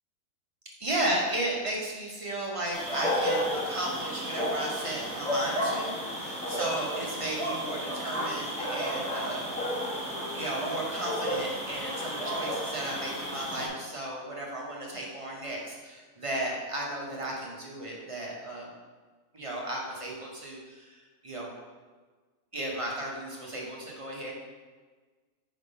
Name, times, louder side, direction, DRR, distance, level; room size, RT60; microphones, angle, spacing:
voice 1, 0.8-9.5 10.3-18.7 19.3-21.5 22.5-24.3, right 1 dB, 30° right, -3 dB, 0.6 m, -34 dB
sound 1, 2.7-13.7, equal, 5° left, 1.0 m, -32 dB
5.1 x 3.6 x 5.3 m, 1.4 s
omnidirectional pair, 1.7 m